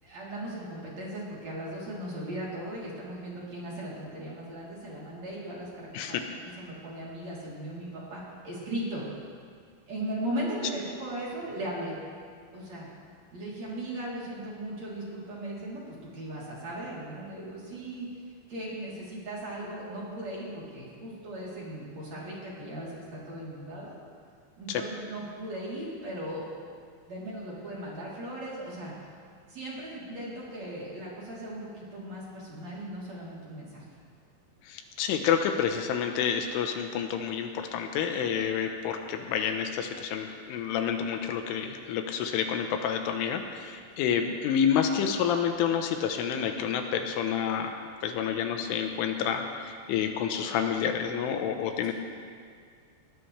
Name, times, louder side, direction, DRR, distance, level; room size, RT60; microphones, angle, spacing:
voice 1, 0.0-6.2 6.6-9.0 9.9-12.0 12.5-12.9 13.3-18.1 18.5-23.9 24.6-26.5 27.0-28.9 29.5-33.8 44.8-44.9, right 1 dB, 35° right, -7 dB, 4.4 m, -37 dB
voice 2, 6.0-6.3 24.7-24.8 34.7-47.7 48.0-51.9, left 8 dB, 85° left, 5 dB, 3.6 m, -29 dB
21.0 x 20.0 x 3.4 m, 2.1 s
omnidirectional pair, 5.5 m